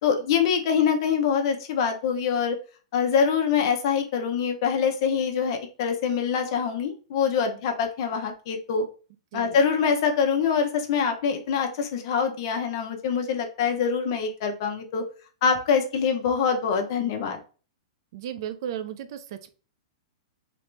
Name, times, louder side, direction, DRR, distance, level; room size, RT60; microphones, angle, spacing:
voice 1, 0.0-2.6 2.9-8.8 9.3-15.0 15.4-17.4, left 6 dB, 50° left, 5 dB, 0.8 m, -24 dB
voice 2, 18.1-19.5, right 9 dB, 55° right, 10 dB, 0.5 m, -35 dB
3.0 x 3.0 x 3.3 m, 0.37 s
hypercardioid pair, 150°, 3 cm